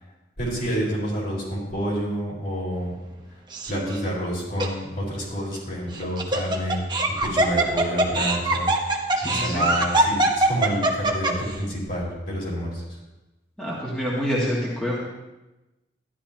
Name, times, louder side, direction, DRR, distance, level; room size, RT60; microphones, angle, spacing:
voice 1, 0.4-2.9 3.7-6.8 7.1-13.0, equal, 50° left, -5 dB, 4.3 m, -29 dB
Laughter, 3.5-4.0 4.6-4.7 5.9-11.5, right 2 dB, 25° right, 1.0 m, -22 dB
voice 2, 9.2-9.6 13.6-15.0, equal, 5° left, -7 dB, 1.8 m, -27 dB
12.5 x 11.0 x 2.9 m, 1.0 s
head